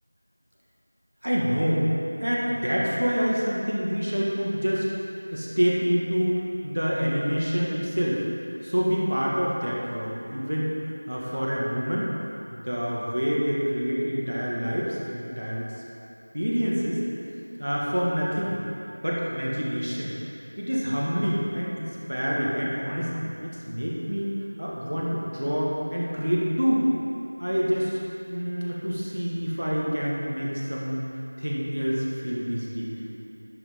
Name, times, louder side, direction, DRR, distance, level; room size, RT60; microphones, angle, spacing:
voice 1, 1.2-1.9 2.2-4.9 5.3-8.2 8.6-12.1 12.5-15.7 16.3-17.0 17.6-18.6 19.0-20.1 20.6-24.3 24.6-26.9 27.4-28.0 28.3-31.1 31.4-33.1, equal, 85° right, -5 dB, 2.0 m, -27 dB
10.5 x 7.8 x 3.8 m, 2.8 s
figure-of-eight pair, 180°, 0 cm